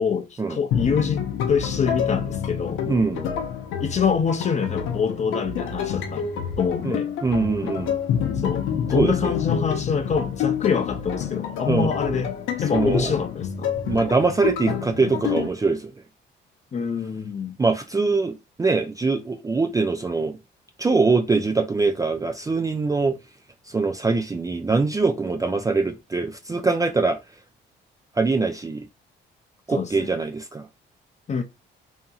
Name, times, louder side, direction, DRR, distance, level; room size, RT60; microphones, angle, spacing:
voice 1, 0.0-2.8 3.8-6.3 6.6-7.1 8.4-12.3 12.6-13.7 16.7-17.6 29.7-30.1 31.3-31.4, left 6 dB, 35° left, 0.5 m, -25 dB
sound 1, 0.7-15.5, left 8 dB, 90° left, 0.6 m, -28 dB
voice 2, 2.8-3.3 6.8-7.9 8.9-9.3 11.7-11.9 12.7-13.1 13.8-15.9 17.6-20.4 20.8-23.2 23.7-27.2 28.2-28.9 29.7-30.7, right 3 dB, 15° right, 0.3 m, -23 dB
2.7 x 2.7 x 2.3 m
cardioid pair, 90°, 20 cm